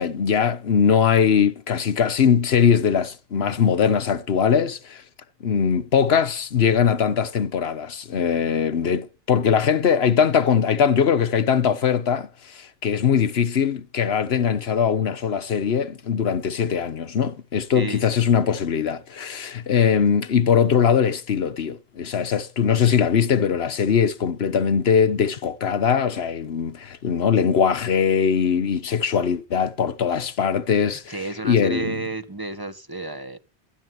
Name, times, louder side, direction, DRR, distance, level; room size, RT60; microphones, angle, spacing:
voice 1, 0.0-5.0 5.4-32.0, left 7 dB, 80° left, 1.2 m, -21 dB
voice 2, 17.7-18.0 31.1-33.4, right 3 dB, 20° right, 1.4 m, -31 dB
13.0 x 11.5 x 9.5 m
omnidirectional pair, 1.0 m